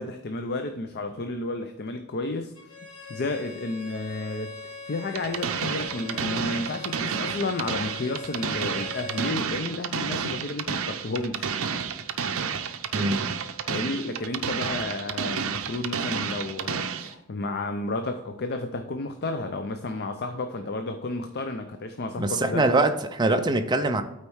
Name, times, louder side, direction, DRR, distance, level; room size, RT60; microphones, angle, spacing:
voice 1, 0.0-2.5 3.1-11.6 13.7-22.6, left 2 dB, 45° left, 0.5 m, -32 dB
Bowed string instrument, 2.6-9.4, left 4 dB, 70° left, 1.2 m, -41 dB
sound 1, 5.1-17.1, right 6 dB, 65° right, 0.6 m, -30 dB
voice 2, 22.2-24.0, right 2 dB, 20° right, 0.5 m, -23 dB
8.8 x 4.4 x 4.6 m
head